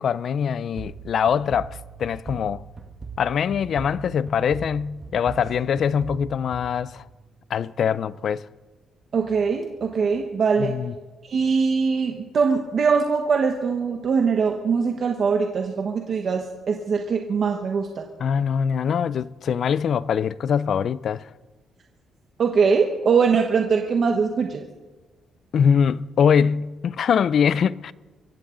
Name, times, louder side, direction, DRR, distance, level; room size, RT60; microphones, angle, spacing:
voice 1, 0.0-2.6 3.2-7.0 7.5-8.5 10.6-10.9 18.2-21.3 25.5-27.9, left 7 dB, 45° left, 0.4 m, -23 dB
sound 1, 0.8-7.4, right 5 dB, 20° right, 1.3 m, -40 dB
voice 2, 9.1-10.8 11.3-18.0 22.4-24.7, right 5 dB, 40° right, 1.1 m, -22 dB
24.5 x 15.0 x 3.9 m
cardioid pair, 165°, 0 cm